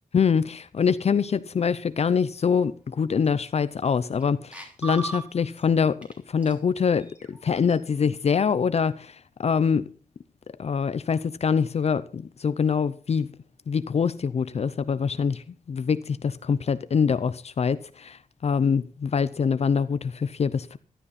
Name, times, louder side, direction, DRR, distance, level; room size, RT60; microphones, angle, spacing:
voice 1, 0.1-9.8 10.6-13.3 13.7-20.8, left 6 dB, 50° left, 0.6 m, -24 dB
sound 1, 3.2-3.3 3.7-4.2 4.5-5.6 6.0-6.1 6.4-7.8, right 3 dB, 10° right, 3.3 m, -38 dB
15.5 x 12.5 x 4.2 m
wide cardioid pair, 165°, 14 cm